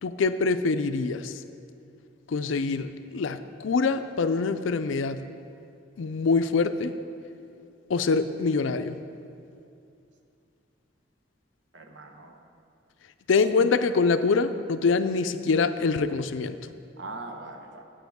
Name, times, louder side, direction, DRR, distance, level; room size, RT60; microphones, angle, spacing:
voice 1, 0.0-1.3 2.3-5.2 6.0-7.0 7.9-9.0 13.3-16.6, left 4 dB, 85° left, 11 dB, 0.4 m, -25 dB
voice 2, 11.7-12.4 13.3-13.7 17.0-17.8, right 2 dB, 70° right, 4 dB, 0.9 m, -41 dB
13.0 x 8.4 x 3.6 m, 2.6 s
head